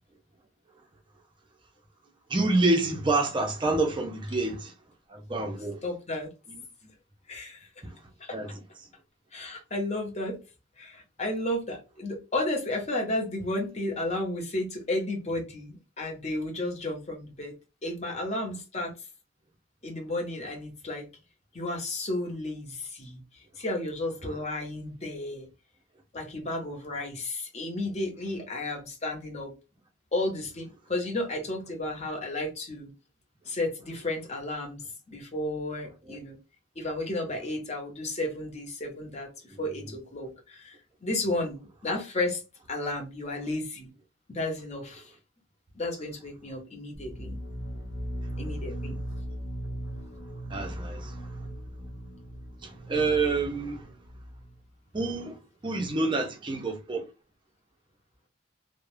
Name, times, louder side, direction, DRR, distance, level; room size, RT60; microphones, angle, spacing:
voice 1, 2.3-4.7 5.1-5.8 7.8-7.9 8.3-8.5 36.1-36.2 39.5-39.6 50.5-51.2 52.6-53.9 54.9-55.4 55.6-57.1, right 3 dB, 25° right, 0.5 m, -27 dB
voice 2, 5.8-6.3 7.3-7.7 8.2-8.4 9.3-10.4 10.8-17.5 17.8-18.9 19.8-21.1 21.5-23.2 23.6-25.5 26.1-29.5 30.1-32.9 33.5-36.4 36.8-40.8 41.0-42.4 42.7-43.9 44.3-45.1 45.7-47.4 48.4-49.0, left 1 dB, 35° left, 0.8 m, -33 dB
sound 1, 46.9-54.6, equal, 80° left, 0.9 m, -38 dB
2.3 x 2.0 x 3.1 m
head